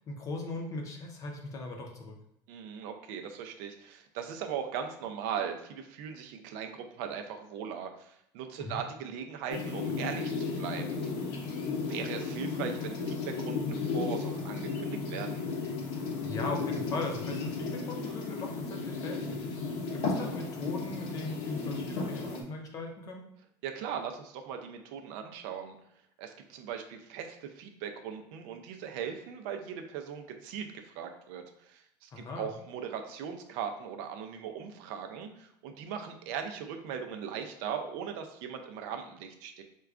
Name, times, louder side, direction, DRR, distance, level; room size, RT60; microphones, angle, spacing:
voice 1, 0.1-2.1 8.6-8.8 16.2-19.4 19.9-23.3 32.1-32.5, left 2 dB, 35° left, 2 dB, 0.6 m, -39 dB
voice 2, 2.5-11.1 11.8-15.5 23.6-25.8 26.2-39.6, right 7 dB, 75° right, 5 dB, 0.5 m, -39 dB
sound 1, 9.5-22.4, left 4 dB, 70° left, 0.6 m, -34 dB
4.5 x 2.2 x 2.4 m, 0.75 s
cardioid pair, 165°, 10 cm